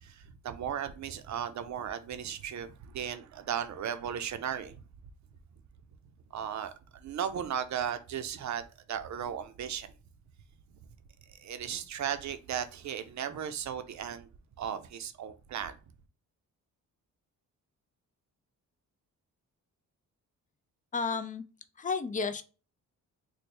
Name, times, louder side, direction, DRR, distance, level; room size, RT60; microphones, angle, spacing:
voice 1, 0.0-4.8 6.3-6.7 7.0-8.6 8.9-9.9 11.4-14.3 14.6-15.7, right 9 dB, 55° right, 0.6 m, -36 dB
voice 2, 20.9-21.4 21.8-22.4, left 4 dB, 25° left, 0.4 m, -32 dB
3.3 x 2.2 x 4.3 m
cardioid pair, 100°, 34 cm